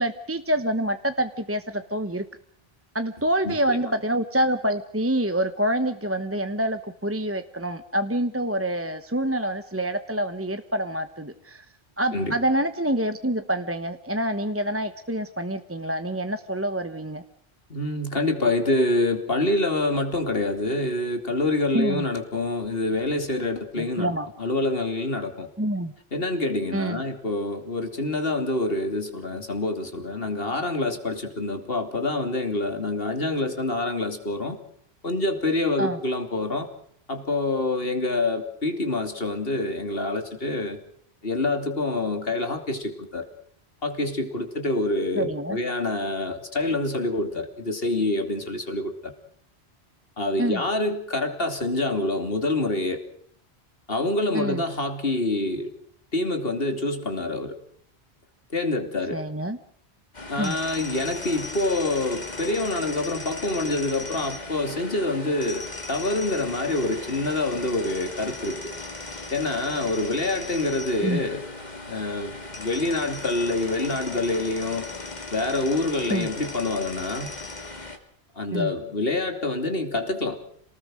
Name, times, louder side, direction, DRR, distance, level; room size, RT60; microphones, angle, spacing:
voice 1, 0.0-2.2 2.9-11.6 12.0-17.2 21.7-22.0 23.7-24.3 25.6-25.9 26.7-27.0 35.8-36.0 45.1-45.6 50.4-50.6 54.3-54.6 59.1-59.6 60.4-60.6 71.0-71.2 76.1-76.3 78.5-78.7, right 1 dB, 15° right, 9 dB, 1.0 m, -26 dB
voice 2, 3.4-3.8 12.1-12.4 17.7-24.1 24.4-25.5 26.1-34.6 35.0-36.7 37.1-40.8 41.2-43.2 43.8-49.1 50.2-53.0 53.9-55.7 56.1-57.5 58.5-59.2 60.3-65.6 65.9-68.7 69.3-71.4 71.9-74.8 75.3-77.3 78.4-80.4, left 2 dB, 60° left, 6 dB, 3.2 m, -26 dB
sound 1, 60.1-78.0, left 2 dB, 40° left, 2.8 m, -37 dB
28.0 x 19.0 x 6.4 m, 0.64 s
omnidirectional pair, 1.1 m